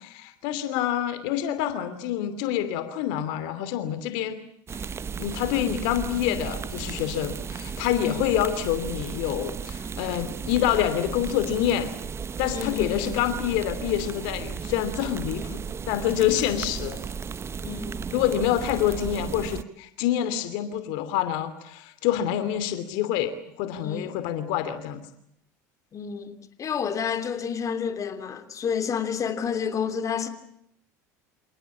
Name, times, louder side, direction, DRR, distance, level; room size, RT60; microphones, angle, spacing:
voice 1, 0.0-4.4 4.8-11.9 12.4-15.6 15.9-17.0 18.1-25.0, left 11 dB, 65° left, 2.8 m, -27 dB
sound 1, 4.7-19.6, right 6 dB, 30° right, 0.9 m, -35 dB
voice 2, 12.5-13.1 15.3-15.5 17.6-18.1 23.8-24.2 25.9-30.3, left 7 dB, 35° left, 3.1 m, -30 dB
27.5 x 19.0 x 8.6 m
hypercardioid pair, 85°, 9 cm